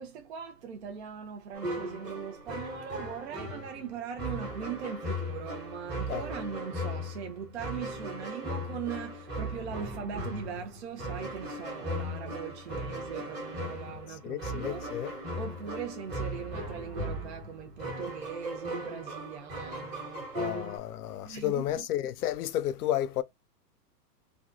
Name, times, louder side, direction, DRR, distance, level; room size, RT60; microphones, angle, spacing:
voice 1, 0.0-14.9 15.3-20.5 21.2-21.8, right 7 dB, 45° right, 0.5 m, -40 dB
sound 1, 1.5-20.8, equal, 20° right, 1.0 m, -38 dB
voice 2, 14.2-15.1 20.3-23.2, left 12 dB, 65° left, 0.5 m, -32 dB
2.4 x 2.3 x 2.4 m
hypercardioid pair, 135°, 49 cm